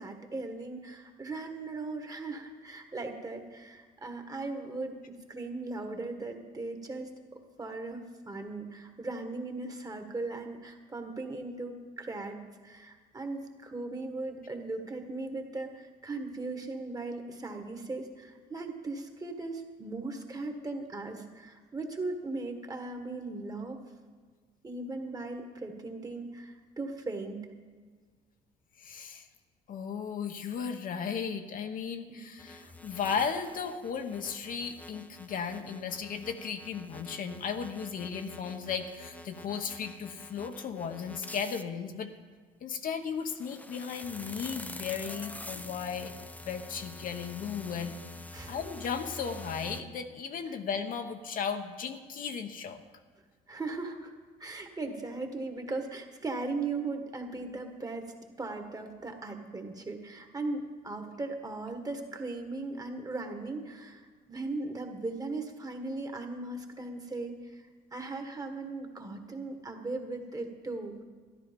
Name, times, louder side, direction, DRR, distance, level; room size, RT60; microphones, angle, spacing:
voice 1, 0.0-7.1 7.6-23.8 24.6-27.5 32.1-32.3 48.3-48.6 53.5-54.1 54.4-58.1 58.4-67.6 67.9-71.0, right 3 dB, 20° right, 5 dB, 1.5 m, -38 dB
voice 2, 28.8-29.3 29.7-42.1 42.6-46.1 46.5-47.9 48.5-52.8, left 6 dB, 55° left, 6 dB, 1.0 m, -35 dB
sound 1, 32.4-41.6 43.1-49.8, left 2 dB, 10° left, 0.6 m, -47 dB
13.5 x 11.0 x 5.2 m, 1.5 s
cardioid pair, 110°, 17 cm